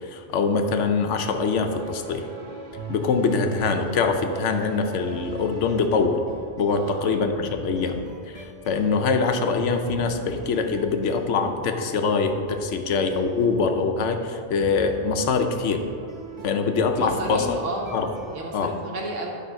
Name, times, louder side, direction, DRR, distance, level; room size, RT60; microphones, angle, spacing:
voice 1, 0.1-2.2 2.9-6.2 6.6-8.0 8.3-15.8 16.4-17.5 17.9-18.1 18.5-18.8, left 4 dB, 80° left, 6 dB, 1.0 m, -23 dB
sound 1, 1.3-18.4, right 2 dB, 30° right, 0.7 m, -41 dB
voice 2, 6.7-7.3 17.0-17.9 18.3-19.4, right 2 dB, 85° right, -1 dB, 1.5 m, -33 dB
10.0 x 3.4 x 5.7 m, 2.3 s
omnidirectional pair, 1.2 m